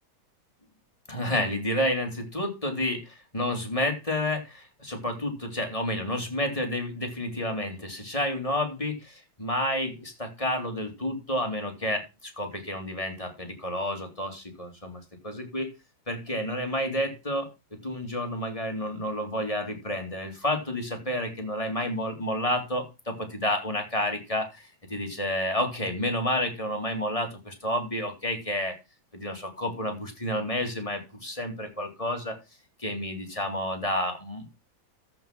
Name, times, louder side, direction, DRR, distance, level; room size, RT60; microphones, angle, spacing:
voice 1, 1.1-15.7 16.1-28.7 29.1-32.4 32.8-34.6, left 1 dB, 15° left, 3 dB, 2.6 m, -30 dB
13.5 x 5.3 x 5.9 m, 0.26 s
omnidirectional pair, 2.2 m